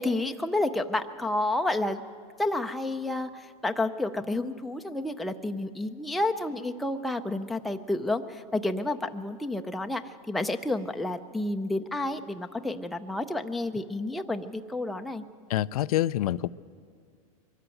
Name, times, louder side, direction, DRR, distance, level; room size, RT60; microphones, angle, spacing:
voice 1, 0.0-2.0 2.4-15.2, left 2 dB, ahead, 5 dB, 0.5 m, -30 dB
voice 2, 15.5-16.5, left 14 dB, 90° left, 17 dB, 0.5 m, -26 dB
22.5 x 13.0 x 9.0 m, 2.1 s
supercardioid pair, 140°, 18 cm